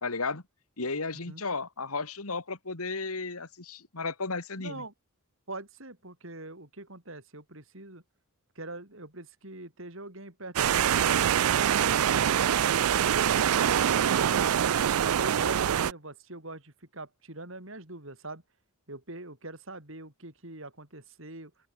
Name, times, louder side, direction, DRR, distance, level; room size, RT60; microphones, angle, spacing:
voice 1, 0.0-0.4 0.8-4.8, left 3 dB, 85° left, 2.4 m, -34 dB
voice 2, 4.6-4.9 5.5-8.0 8.6-12.3 15.2-18.4 18.9-21.5, right 2 dB, 60° right, 4.7 m, -43 dB
sound 1, 10.6-15.9, right 9 dB, 85° right, 0.4 m, -24 dB
open air
head